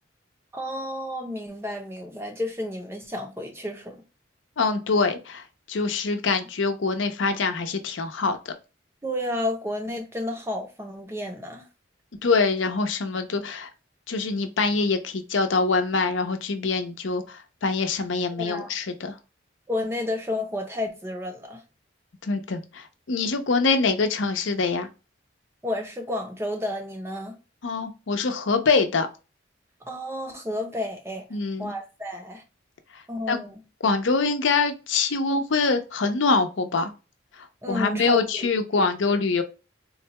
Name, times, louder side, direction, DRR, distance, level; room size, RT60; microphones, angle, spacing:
voice 1, 0.5-4.0 9.0-11.7 18.4-18.7 19.7-21.6 25.6-27.4 29.8-31.2 31.6-32.4 33.1-33.6 37.6-38.5 38.8-39.1, left 1 dB, 15° right, 0.5 m, -31 dB
voice 2, 4.6-5.4 5.7-8.5 12.2-13.7 14.1-19.1 22.2-24.9 27.6-29.1 31.3-31.7 33.3-33.4 33.8-36.9 37.7-39.4, left 4 dB, 80° left, 0.6 m, -24 dB
3.9 x 2.2 x 2.8 m
head